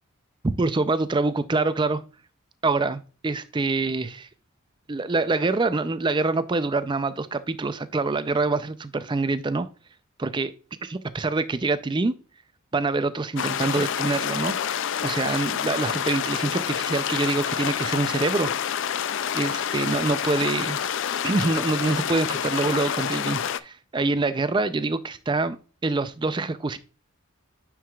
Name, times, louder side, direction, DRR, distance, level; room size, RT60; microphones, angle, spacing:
voice 1, 0.4-2.0 2.6-4.3 4.9-9.7 10.2-10.5 10.8-12.1 12.7-14.6 15.0-18.5 19.3-20.8 21.2-25.6 25.8-26.8, right 3 dB, 20° right, 0.4 m, -25 dB
sound 1, 13.4-23.6, left 9 dB, 55° left, 0.4 m, -28 dB
9.1 x 4.7 x 2.3 m
head